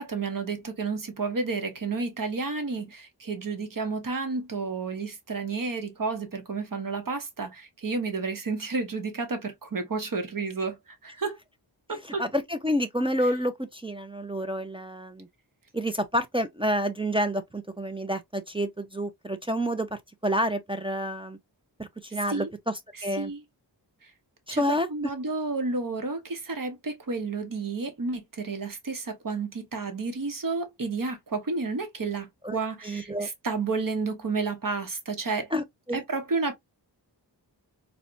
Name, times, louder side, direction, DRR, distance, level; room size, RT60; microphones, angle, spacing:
voice 1, 0.0-11.4 11.9-12.2 13.2-13.3 22.1-22.5 22.9-23.4 24.0-24.1 24.5-24.6 24.9-35.5 35.9-36.5, right 4 dB, 50° right, 0.8 m, -31 dB
voice 2, 12.2-15.3 15.7-21.4 21.8-22.7 23.0-23.3 24.5-24.9 32.4-32.6 32.8-33.3 35.5-36.0, equal, 15° right, 0.3 m, -29 dB
4.1 x 2.1 x 2.4 m
wide cardioid pair, 90°, 43 cm